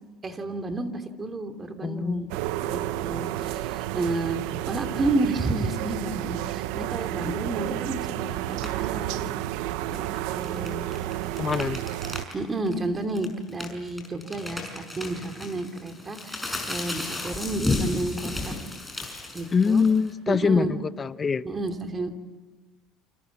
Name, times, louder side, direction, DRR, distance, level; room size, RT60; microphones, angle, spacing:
voice 1, 0.2-2.3 2.6-9.3 9.9-10.0 10.3-10.9 12.3-18.5 19.3-19.8 20.3-20.7 21.4-22.2, right 2 dB, 25° right, 6 dB, 2.8 m, -31 dB
voice 2, 1.8-2.2 11.4-11.8 19.5-21.4, left 5 dB, 25° left, 14 dB, 0.9 m, -24 dB
sound 1, 2.3-12.2, right 14 dB, 85° right, 1.0 m, -31 dB
sound 2, 8.5-8.9 9.8-12.3 12.7-12.8 13.1-20.1, left 2 dB, 5° left, 5.8 m, -33 dB
29.0 x 26.5 x 7.3 m, 1.3 s
cardioid pair, 120°, 0 cm